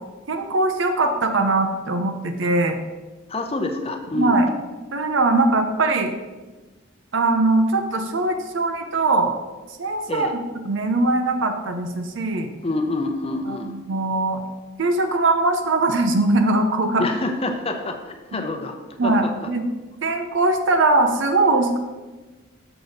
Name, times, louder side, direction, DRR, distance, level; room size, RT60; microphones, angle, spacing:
voice 1, 0.3-2.8 4.1-4.5 4.9-6.1 7.1-9.3 9.8-10.4 10.6-12.5 13.5-14.4 14.8-17.1 19.0-19.6 20.0-21.8, right 2 dB, 60° right, 5 dB, 0.6 m, -21 dB
voice 2, 3.3-4.4 10.1-10.3 12.6-13.7 17.0-18.7 19.0-19.5, left 2 dB, 30° left, 5 dB, 0.7 m, -27 dB
6.8 x 6.4 x 4.0 m, 1.2 s
head